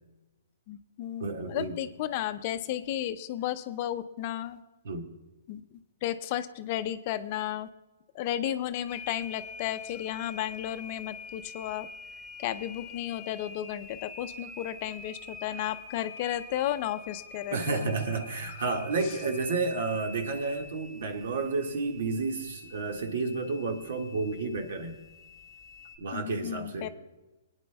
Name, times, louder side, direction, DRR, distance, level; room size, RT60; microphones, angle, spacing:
voice 1, 0.7-4.6 5.5-5.6 6.0-7.7 8.1-11.9 12.4-17.9 18.5-18.6 26.1-26.9, left 12 dB, 45° left, 11 dB, 0.6 m, -33 dB
voice 2, 1.2-1.8 4.8-5.1 17.5-25.0 26.0-26.9, right 3 dB, 70° right, 4 dB, 1.8 m, -31 dB
sound 1, 8.9-26.0, left 3 dB, 15° left, 1.0 m, -46 dB
23.5 x 9.6 x 2.3 m, 1.1 s
hypercardioid pair, 140°, 0 cm